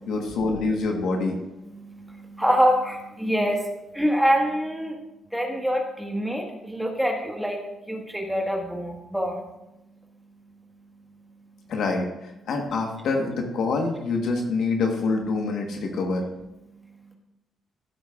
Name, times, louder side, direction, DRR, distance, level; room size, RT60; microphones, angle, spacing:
voice 1, 0.1-1.4 11.7-16.3, left 3 dB, 70° left, 2 dB, 1.3 m, -26 dB
voice 2, 1.7-5.0 5.3-9.4, equal, 5° right, 1 dB, 1.5 m, -25 dB
14.5 x 8.0 x 2.4 m, 0.94 s
cardioid pair, 90°, 0 cm